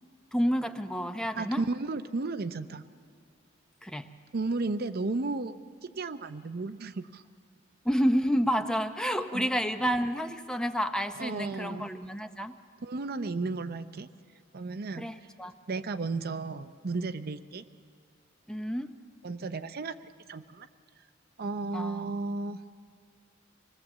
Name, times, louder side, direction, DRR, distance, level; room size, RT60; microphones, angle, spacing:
voice 1, 0.3-1.6 3.8-4.1 7.8-12.6 15.0-15.5 18.5-19.0 21.7-22.1, equal, 5° left, 8 dB, 0.6 m, -29 dB
voice 2, 1.4-2.8 4.3-5.6 5.8-7.2 9.3-9.5 11.2-11.9 12.8-14.1 14.5-15.1 15.7-17.6 19.2-20.7 21.4-22.6, right 3 dB, 50° right, 11 dB, 0.6 m, -34 dB
25.5 x 19.0 x 7.3 m, 2.3 s
head